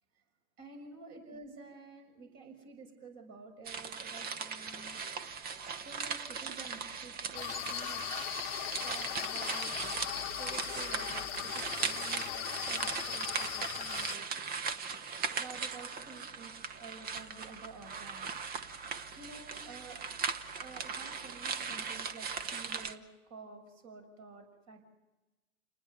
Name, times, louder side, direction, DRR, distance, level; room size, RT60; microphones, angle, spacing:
voice 1, 0.6-5.1 5.8-8.3 8.8-9.8 10.4-14.5 15.4-18.4 19.2-20.1 20.5-23.0 23.3-24.8, right 4 dB, 40° right, 4 dB, 6.3 m, -51 dB
sound 1, 3.6-23.0, right 5 dB, 20° right, 1.1 m, -39 dB
sound 2, 7.3-14.1, left 17 dB, 45° left, 1.1 m, -39 dB
29.0 x 20.0 x 7.0 m, 1.1 s
figure-of-eight pair, 105°, 41 cm